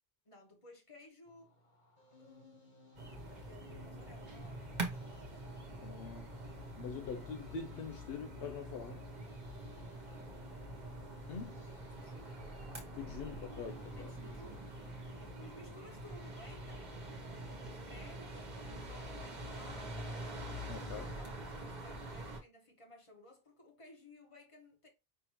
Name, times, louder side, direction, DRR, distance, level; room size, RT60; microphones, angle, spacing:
voice 1, 0.2-1.6 2.0-2.9 3.2-5.4 11.6-12.5 13.9-14.8 15.2-20.1 20.8-24.9, left 1 dB, 30° left, 1.3 m, -58 dB
sound 1, 1.3-17.8, left 1 dB, 50° left, 1.3 m, -62 dB
sound 2, 2.9-22.4, right 1 dB, 45° right, 1.2 m, -45 dB
sound 3, 4.3-6.3, right 2 dB, 25° right, 0.5 m, -51 dB
voice 2, 5.8-6.3 6.8-9.0 11.3-11.6 12.9-14.1 20.7-21.0, left 6 dB, 75° left, 0.8 m, -44 dB
5.5 x 2.9 x 3.0 m
omnidirectional pair, 1.0 m